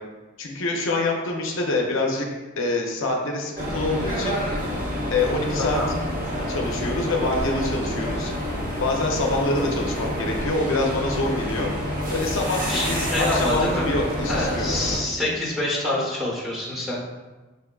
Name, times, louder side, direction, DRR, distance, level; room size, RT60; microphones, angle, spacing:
voice 1, 0.4-2.3 2.6-4.4 5.1-5.8 6.5-8.3 8.8-11.7 12.1-14.8, left 2 dB, 65° left, 1 dB, 0.5 m, -25 dB
sound 1, 3.6-15.0, equal, 40° right, 0.8 m, -28 dB
voice 2, 5.6-5.9 12.7-13.9 14.3-17.0, left 1 dB, ahead, -6 dB, 0.9 m, -26 dB
5.4 x 3.4 x 2.2 m, 1.2 s
head